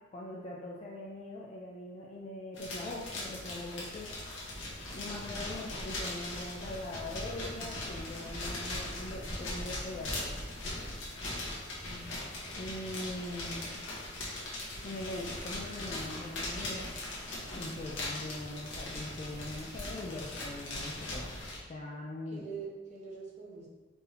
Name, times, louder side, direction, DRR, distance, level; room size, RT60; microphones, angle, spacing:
voice 1, 0.1-4.2 4.9-10.4 12.6-13.8 14.8-16.9 17.5-21.4 21.7-22.4, left 1 dB, 35° left, -3 dB, 0.4 m, -42 dB
sound 1, 2.5-21.6, left 1 dB, 85° left, 1.2 m, -40 dB
voice 2, 11.8-12.3 22.3-23.7, right 5 dB, 40° right, -5 dB, 0.9 m, -44 dB
4.4 x 2.7 x 3.3 m, 1.2 s
head